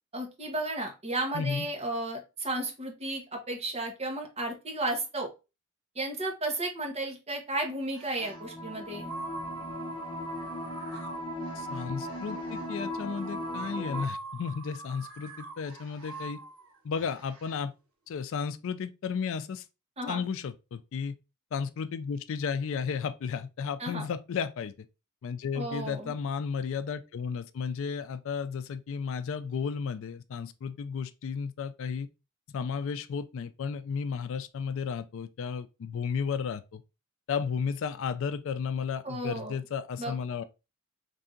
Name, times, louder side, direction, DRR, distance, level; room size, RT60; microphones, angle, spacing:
voice 1, 0.1-5.3 5.9-9.1 20.0-20.2 23.8-24.1 25.5-26.1 39.0-39.6 40.0-40.1, right 2 dB, 30° right, 1.0 m, -33 dB
voice 2, 1.3-1.7 11.6-16.4 16.8-17.7 18.1-19.6 20.1-21.1 21.5-24.7 25.2-32.1 32.5-36.8 37.3-40.4, left 6 dB, 65° left, 0.3 m, -33 dB
sound 1, 7.9-8.5 9.0-17.6, right 3 dB, 85° right, 1.0 m, -44 dB
sound 2, 8.2-14.1, left 1 dB, 25° left, 0.6 m, -37 dB
3.3 x 2.7 x 3.7 m
head